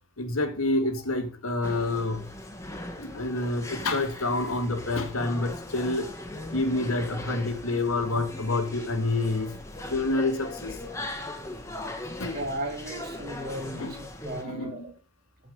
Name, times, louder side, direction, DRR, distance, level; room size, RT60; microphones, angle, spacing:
voice 1, 0.2-2.3 3.0-6.1 6.5-9.6 9.9-10.8 12.2-12.4 13.8-13.9 14.4-14.9, left 2 dB, 75° left, 2.1 m, -28 dB
sound 1, 1.6-14.4, left 1 dB, 15° left, 1.6 m, -39 dB
voice 2, 12.3-14.9, right 1 dB, 40° right, 2.9 m, -36 dB
14.5 x 5.2 x 6.9 m
head